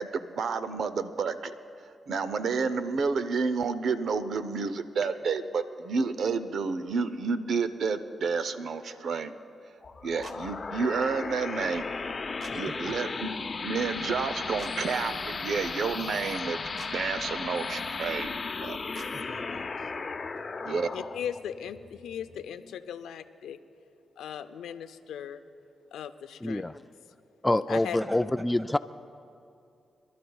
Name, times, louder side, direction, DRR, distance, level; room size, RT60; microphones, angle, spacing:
voice 1, 0.0-1.5 2.1-9.3 10.0-11.8 12.5-13.3 13.6-16.6 16.9-18.3 18.6-18.8 20.7-20.9, right 5 dB, 70° right, 12 dB, 0.7 m, -30 dB
sound 1, 9.8-22.9, left 4 dB, 45° left, 0.8 m, -36 dB
sound 2, 10.2-10.4 12.4-12.6 14.6-14.7 16.8-16.9 18.9-19.1, right 3 dB, 55° right, 1.3 m, -45 dB
voice 2, 12.5-13.0 18.6-19.9 27.7-28.2 28.6-28.8, right 1 dB, 25° right, 7 dB, 1.4 m, -47 dB
voice 3, 20.9-23.6 24.2-25.4 25.9-26.8 27.7-28.0, left 9 dB, 85° left, 10 dB, 0.5 m, -38 dB
voice 4, 26.4-26.7 27.4-28.8, left 1 dB, 15° left, 12 dB, 0.3 m, -26 dB
26.5 x 12.0 x 2.3 m, 2.6 s
supercardioid pair, 50°, 0 cm